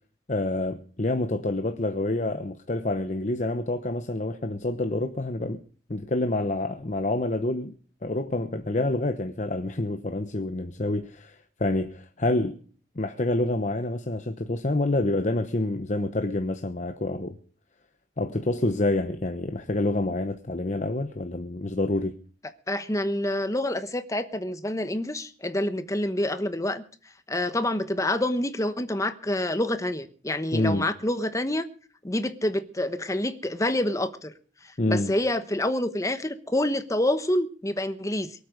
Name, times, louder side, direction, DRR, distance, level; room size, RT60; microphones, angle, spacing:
voice 1, 0.3-5.6 5.9-7.7 8.0-12.6 13.0-17.4 18.2-22.2 30.5-30.9 34.8-35.1, left 2 dB, 45° left, 0.9 m, -27 dB
voice 2, 22.7-26.8 27.3-31.6 32.0-34.3 34.9-38.3, left 1 dB, 20° left, 1.1 m, -27 dB
23.5 x 8.5 x 5.2 m
head